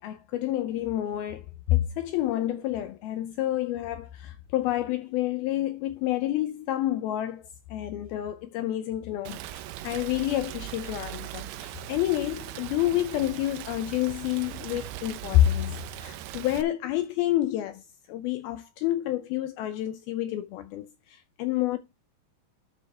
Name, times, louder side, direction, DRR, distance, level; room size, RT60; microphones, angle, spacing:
voice 1, 0.0-17.8 18.1-21.8, left 14 dB, 80° left, 2.3 m, -29 dB
Rain, 9.3-16.6, right 14 dB, 80° right, 2.6 m, -40 dB
12.0 x 6.1 x 3.3 m
omnidirectional pair, 4.8 m